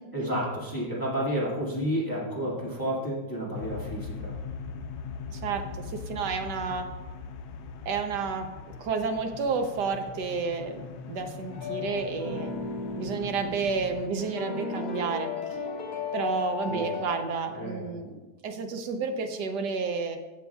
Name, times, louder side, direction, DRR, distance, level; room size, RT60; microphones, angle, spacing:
voice 1, 0.1-4.3 16.7-16.9 17.5-17.9, equal, 10° left, -6 dB, 1.9 m, -31 dB
sound 1, 3.5-14.1, left 5 dB, 90° left, 1.4 m, -41 dB
voice 2, 5.3-6.9 7.8-8.5 8.8-10.8 11.1-12.5 13.0-15.3 16.1-20.2, right 5 dB, 65° right, 5 dB, 1.3 m, -31 dB
sound 2, 11.5-17.2, left 4 dB, 50° left, 0.8 m, -35 dB
15.0 x 6.8 x 2.3 m, 1.2 s
omnidirectional pair, 2.1 m